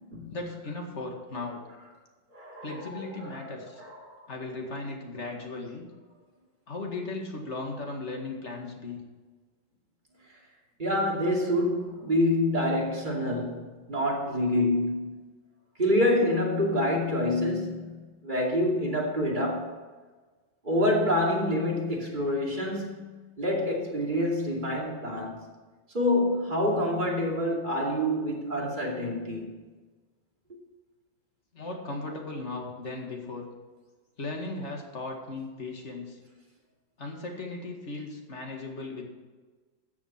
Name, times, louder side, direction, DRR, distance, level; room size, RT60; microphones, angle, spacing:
voice 1, 0.3-1.6 2.6-3.8 4.3-5.8 6.7-9.0 31.5-33.5 34.2-36.2 37.0-39.0, left 2 dB, 35° left, 1 dB, 2.1 m, -37 dB
voice 2, 2.3-3.5 3.8-4.2 10.8-15.3 15.8-19.8 20.6-23.0 23.4-25.4 25.9-29.5, left 1 dB, 25° right, -2 dB, 2.7 m, -27 dB
14.0 x 7.2 x 5.8 m, 1.3 s
omnidirectional pair, 2.1 m